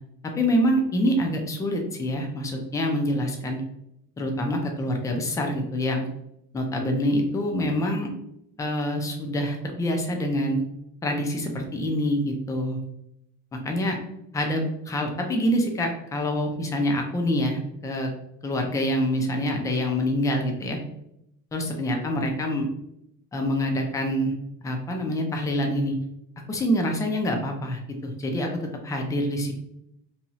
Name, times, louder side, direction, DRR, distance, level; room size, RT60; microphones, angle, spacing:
voice 1, 0.2-3.6 4.2-6.1 6.5-8.1 8.6-10.6 11.0-12.8 13.5-14.0 14.3-18.1 18.4-20.8 21.5-22.7 23.3-24.3 24.6-25.9 26.5-29.5, equal, 10° left, 2 dB, 0.3 m, -26 dB
2.7 x 2.3 x 2.9 m, 0.79 s
cardioid pair, 135°, 36 cm